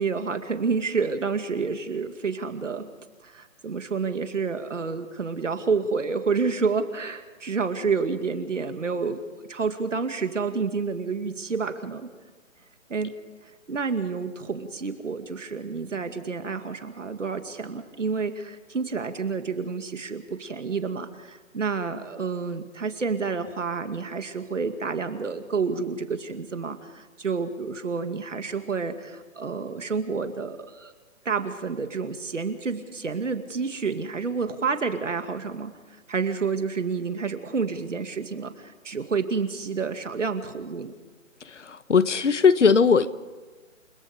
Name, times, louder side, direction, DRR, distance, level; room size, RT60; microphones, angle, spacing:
voice 1, 0.0-2.9 3.2-9.2 9.5-12.1 12.9-13.1 13.7-30.9 31.2-35.7 36.1-40.9, right 5 dB, 65° right, 8 dB, 2.4 m, -29 dB
voice 2, 41.4-43.1, left 5 dB, 65° left, 15 dB, 1.2 m, -19 dB
29.5 x 17.5 x 5.1 m, 1.4 s
hypercardioid pair, 180°, 39 cm